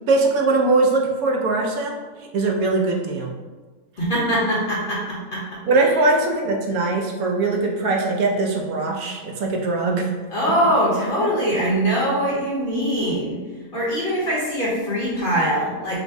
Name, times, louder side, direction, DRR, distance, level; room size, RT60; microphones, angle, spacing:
voice 1, 0.1-2.0 2.3-3.3 5.7-10.1, right 3 dB, 75° right, 1 dB, 1.0 m, -21 dB
voice 2, 4.0-6.1 10.3-13.4 13.7-16.0, equal, 40° left, -6 dB, 0.9 m, -22 dB
5.1 x 2.1 x 3.4 m, 1.3 s
omnidirectional pair, 1.6 m